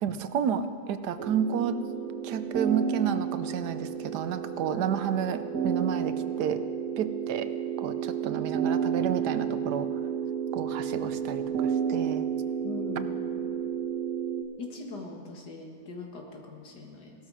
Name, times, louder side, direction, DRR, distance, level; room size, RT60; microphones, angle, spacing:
voice 1, 0.0-1.8 2.2-6.6 7.0-7.5 7.8-9.9 10.5-12.2, right 8 dB, 85° right, 11 dB, 1.3 m, -31 dB
sound 1, 1.2-14.4, right 8 dB, 65° right, 1.9 m, -31 dB
voice 2, 12.6-13.1 14.6-17.1, left 4 dB, 90° left, 1 dB, 2.4 m, -41 dB
18.0 x 13.0 x 4.9 m, 2.3 s
omnidirectional pair, 1.7 m